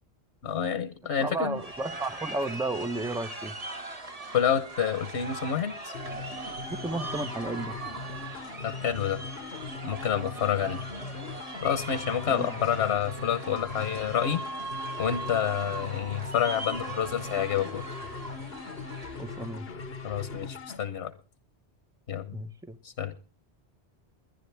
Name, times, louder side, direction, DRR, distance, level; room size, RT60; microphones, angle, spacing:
voice 1, 0.4-1.6 4.3-5.9 8.6-9.2 9.8-10.8 11.6-14.4 15.0-17.9 20.0-21.1 22.1-22.4 22.8-23.1, left 9 dB, 85° left, 1.3 m, -28 dB
voice 2, 1.2-3.5 6.7-7.8 12.3-12.5 19.2-19.7 22.3-22.8, right 2 dB, 5° right, 0.7 m, -33 dB
sound 1, 1.5-19.5, right 2 dB, 35° right, 1.6 m, -40 dB
sound 2, 5.9-20.8, left 4 dB, 65° left, 1.5 m, -40 dB
22.0 x 10.5 x 3.4 m
omnidirectional pair, 1.1 m